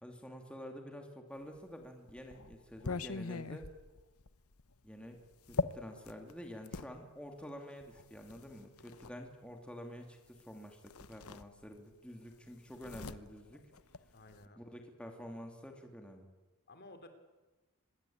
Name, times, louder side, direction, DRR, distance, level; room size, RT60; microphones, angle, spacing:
voice 1, 0.0-3.7 4.8-5.2 5.5-13.7 14.6-16.3, equal, 5° left, 3 dB, 2.6 m, -49 dB
sound 1, 1.6-6.9 7.8-9.2 10.4-10.5 10.8-12.0 12.2-14.5, left 4 dB, 75° left, 1.0 m, -42 dB
voice 2, 14.1-14.6 16.7-17.1, left 2 dB, 45° left, 8 dB, 3.3 m, -54 dB
25.0 x 21.0 x 8.7 m, 1.2 s
head